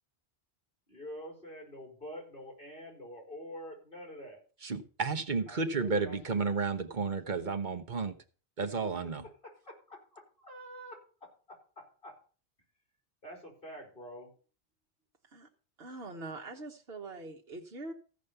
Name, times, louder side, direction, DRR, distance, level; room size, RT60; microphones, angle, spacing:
voice 1, 0.9-4.4 5.5-6.5 9.4-12.2 13.2-14.3, equal, 55° left, 1 dB, 4.8 m, -47 dB
voice 2, 4.6-8.2 8.6-9.2, right 4 dB, 45° right, 7 dB, 1.1 m, -32 dB
voice 3, 15.8-17.9, right 2 dB, 65° right, 1 dB, 1.5 m, -43 dB
15.0 x 5.2 x 6.8 m, 0.38 s
omnidirectional pair, 1.1 m